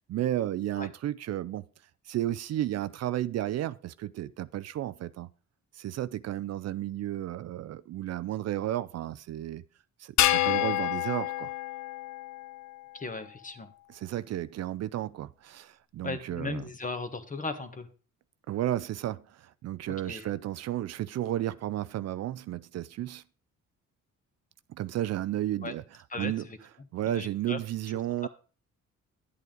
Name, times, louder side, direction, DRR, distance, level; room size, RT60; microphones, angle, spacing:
voice 1, 0.1-1.6 2.1-5.3 5.7-9.6 10.0-11.5 13.9-16.6 18.5-23.2 24.8-25.8 26.2-26.4 26.9-28.3, right 13 dB, 60° right, 0.5 m, -33 dB
sound 1, 10.2-12.7, left 15 dB, 65° left, 0.5 m, -28 dB
voice 2, 12.9-13.7 16.0-17.9 19.9-20.3 25.6-25.7 26.1-26.6 27.1-27.6, left 3 dB, 25° left, 1.4 m, -37 dB
11.0 x 8.3 x 3.9 m
cardioid pair, 90°, 30 cm